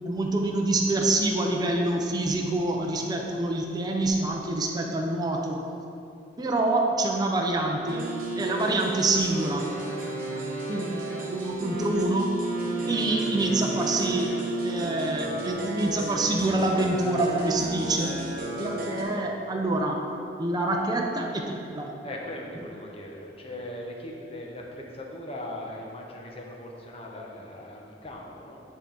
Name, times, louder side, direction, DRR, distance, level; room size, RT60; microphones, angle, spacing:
voice 1, 0.1-5.6 6.4-9.7 10.7-12.3 12.9-14.3 14.6-20.0 20.4-21.9, right 2 dB, 20° right, 0 dB, 0.6 m, -26 dB
sound 1, 7.9-19.0, right 2 dB, 55° right, 1.0 m, -32 dB
voice 2, 22.0-28.6, left 1 dB, 35° left, -1 dB, 0.9 m, -39 dB
9.6 x 3.7 x 3.8 m, 2.7 s
head